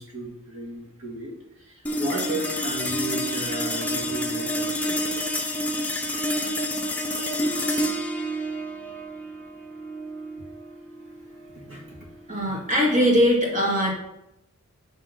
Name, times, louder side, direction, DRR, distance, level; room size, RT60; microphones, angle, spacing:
voice 1, 0.0-5.0 11.5-12.0, right 1 dB, 70° right, -2 dB, 2.0 m, -34 dB
sound 1, 1.8-12.5, equal, 5° left, 0.7 m, -29 dB
voice 2, 12.3-13.9, equal, 35° right, -3 dB, 2.1 m, -21 dB
6.4 x 3.7 x 5.7 m, 0.88 s
head